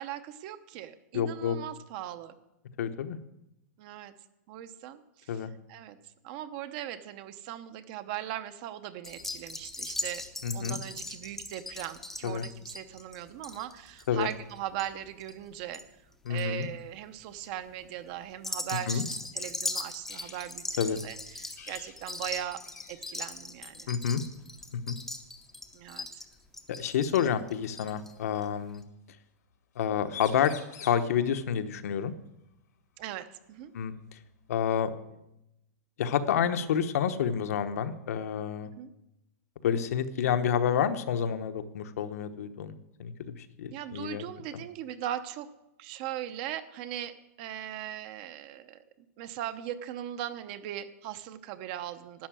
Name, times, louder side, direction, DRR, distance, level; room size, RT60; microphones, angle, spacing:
voice 1, 0.0-2.3 3.8-4.1 4.5-5.4 5.7-6.0 6.2-10.2 10.5-15.8 16.3-20.8 21.0-22.6 22.9-23.9 25.7-26.1 33.0-33.7 38.8-38.9 43.7-45.5 45.8-48.8 49.2-52.3, right 12 dB, 30° right, 12 dB, 0.7 m, -39 dB
voice 2, 1.1-1.6 2.8-3.2 5.3-5.5 10.4-10.8 12.2-12.4 14.1-14.3 16.2-16.7 18.9-19.0 20.8-21.0 23.9-24.2 24.7-25.0 26.8-28.8 29.8-30.5 30.8-32.1 33.7-33.9 34.5-34.9 36.0-38.7 39.6-42.7 43.0-43.1 43.4-44.2 44.5-44.6, left 8 dB, 60° left, 9 dB, 1.1 m, -29 dB
sound 1, 9.0-15.8 16.1-16.6 17.2-17.5 18.3-28.1 28.4-28.5 28.7-28.8, left 2 dB, 5° left, 0.7 m, -39 dB
sound 2, 20.1-20.5 20.8-21.0 21.5-22.0 22.3-22.4 22.6-23.2 24.4-24.6 26.3-26.4 27.5-28.4 29.7-29.8 30.0-31.1 33.0-33.1 33.6-34.6, left 8 dB, 90° left, 2.5 m, -48 dB
12.0 x 9.5 x 7.6 m, 0.88 s
supercardioid pair, 175°, 9 cm